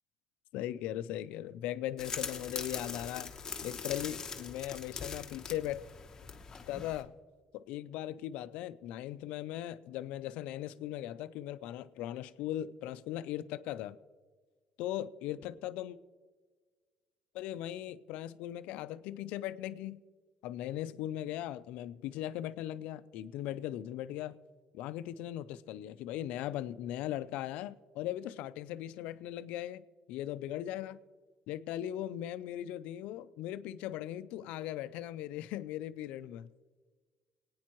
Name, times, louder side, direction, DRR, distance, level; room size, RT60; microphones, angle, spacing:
voice 1, 0.5-3.3 3.6-5.8 6.7-7.1 7.5-14.0 14.8-16.0 17.3-20.0 20.4-24.4 24.7-31.0 31.5-36.5, left 12 dB, 90° left, 0.5 m, -39 dB
sound 1, 2.0-7.0, left 5 dB, 30° left, 1.0 m, -42 dB
25.5 x 9.4 x 3.0 m
cardioid pair, 125°, 2 cm